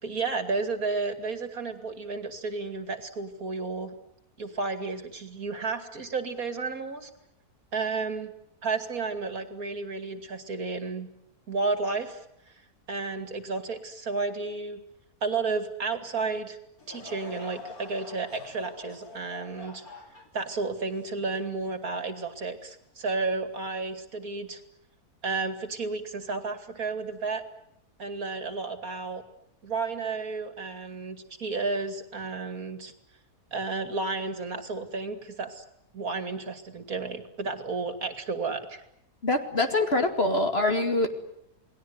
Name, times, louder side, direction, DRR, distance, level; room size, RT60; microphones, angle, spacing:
voice 1, 0.0-3.9 4.4-7.1 7.7-8.3 8.6-11.1 11.5-12.2 12.9-14.8 15.2-16.6 16.9-19.8 20.3-24.6 25.2-27.4 28.0-29.2 29.6-32.9 33.5-35.6 35.9-38.8, right 4 dB, 60° right, 9 dB, 2.9 m, -32 dB
Laughter / Crowd, 16.8-22.3 22.8-22.9 23.7-24.0, left 3 dB, 65° left, 3.6 m, -45 dB
voice 2, 39.2-41.1, left 2 dB, 40° left, 6 dB, 2.6 m, -24 dB
29.0 x 20.0 x 9.5 m, 0.77 s
omnidirectional pair, 1.7 m